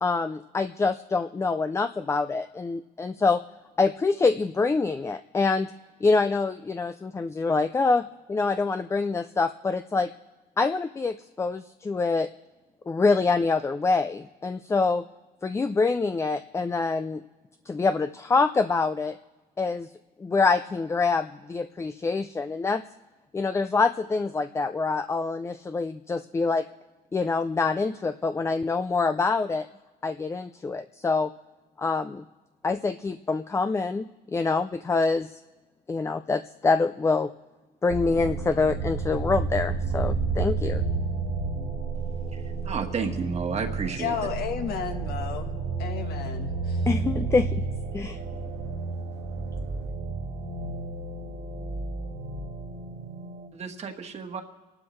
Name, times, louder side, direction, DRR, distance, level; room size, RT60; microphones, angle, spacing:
voice 1, 0.0-3.4 3.8-5.7 6.0-10.1 10.6-12.3 12.9-15.0 15.4-17.2 17.7-19.2 19.6-19.9 20.2-22.8 23.3-26.7 27.1-29.7 30.0-31.3 31.8-32.2 32.6-35.4 35.9-37.3 37.8-40.8 46.9-47.6 47.9-48.2, left 4 dB, 15° left, 10 dB, 0.4 m, -25 dB
sound 1, 37.9-53.5, right 4 dB, 80° right, 2.5 m, -31 dB
voice 2, 42.3-44.1 53.5-54.4, right 5 dB, 40° right, 5 dB, 1.5 m, -32 dB
voice 3, 44.0-45.5 45.8-46.8, left 8 dB, 70° left, 6 dB, 1.3 m, -32 dB
26.0 x 12.0 x 3.2 m, 1.2 s
cardioid pair, 110°, 17 cm